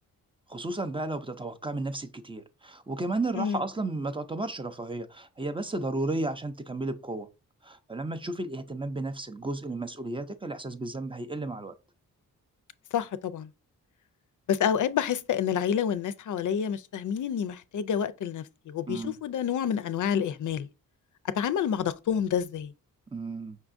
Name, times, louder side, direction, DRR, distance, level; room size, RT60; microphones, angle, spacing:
voice 1, 0.5-7.3 7.6-11.7 18.9-19.2 23.1-23.6, right 2 dB, 15° right, 0.4 m, -33 dB
voice 2, 12.9-13.5 14.5-20.7 21.4-22.7, left 8 dB, 60° left, 0.4 m, -28 dB
5.5 x 3.5 x 2.5 m
wide cardioid pair, 110°, 34 cm